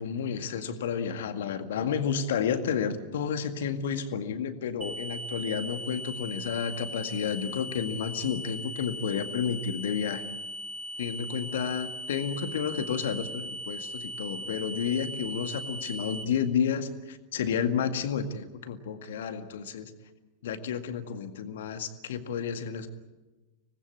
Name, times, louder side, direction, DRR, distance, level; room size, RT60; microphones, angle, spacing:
voice 1, 0.0-10.2 11.0-19.9 20.4-22.9, left 7 dB, 60° left, 9 dB, 1.9 m, -31 dB
sound 1, 4.8-16.2, equal, 15° right, 5.1 m, -39 dB
25.5 x 19.5 x 8.7 m, 1.1 s
figure-of-eight pair, 90°, 0 cm